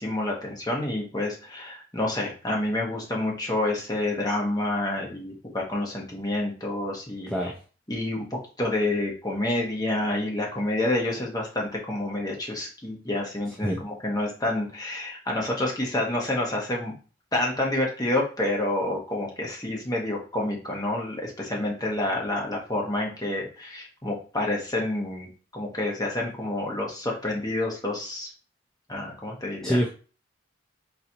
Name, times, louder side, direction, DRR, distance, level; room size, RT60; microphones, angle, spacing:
voice 1, 0.0-7.3 7.9-16.9 17.3-25.3 25.5-28.3 28.9-29.8, left 1 dB, 20° left, -1 dB, 1.0 m, -28 dB
voice 2, 7.3-7.6 13.6-13.8 29.6-29.9, equal, ahead, -3 dB, 0.5 m, -25 dB
4.4 x 3.9 x 2.8 m, 0.37 s
head